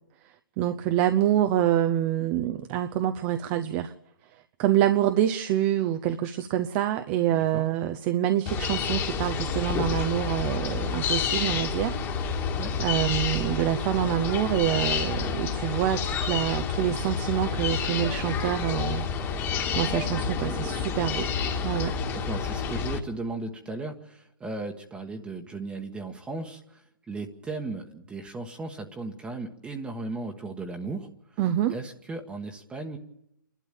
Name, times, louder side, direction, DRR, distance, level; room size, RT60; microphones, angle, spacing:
voice 1, 0.6-3.9 4.6-12.5 12.8-19.1 19.4-21.3 21.6-22.0 31.4-31.8, right 12 dB, 30° right, 7 dB, 0.8 m, -26 dB
voice 2, 7.3-7.6 12.6-12.7 22.1-31.4 31.7-33.0, right 3 dB, 10° right, 3 dB, 1.3 m, -36 dB
sound 1, 8.5-23.0, left 6 dB, 20° left, 1.9 m, -29 dB
28.0 x 12.0 x 9.0 m, 0.81 s
hypercardioid pair, 140°, 11 cm